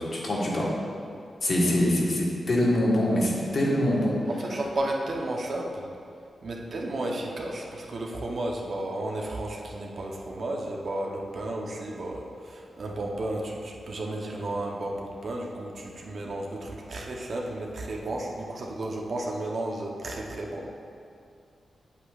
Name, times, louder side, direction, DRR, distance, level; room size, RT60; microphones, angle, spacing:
voice 1, 0.1-0.7 1.4-4.2, left 1 dB, 50° left, -4 dB, 1.5 m, -24 dB
voice 2, 4.3-5.9 6.4-20.8, right 1 dB, 55° right, -1 dB, 0.8 m, -33 dB
8.3 x 8.1 x 2.4 m, 2.4 s
wide cardioid pair, 130°, 0 cm